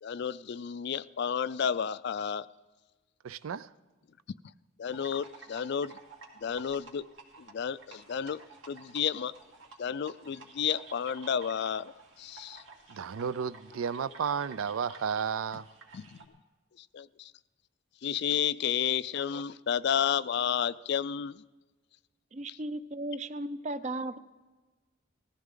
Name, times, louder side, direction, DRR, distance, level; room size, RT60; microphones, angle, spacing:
voice 1, 0.0-2.5 4.8-6.0 6.4-7.1 7.4-8.4 8.7-9.3 9.8-11.9 12.2-12.6 15.9-16.3 16.8-17.3 18.0-21.4, left 8 dB, 55° left, 17 dB, 0.4 m, -31 dB
voice 2, 3.2-3.7 12.9-15.6, right 6 dB, 90° right, 17 dB, 0.4 m, -32 dB
sound 1, 4.9-16.2, right 4 dB, 75° right, 2.3 m, -52 dB
voice 3, 22.3-24.2, right 2 dB, 35° right, 13 dB, 0.5 m, -36 dB
19.0 x 14.5 x 3.8 m, 1.2 s
head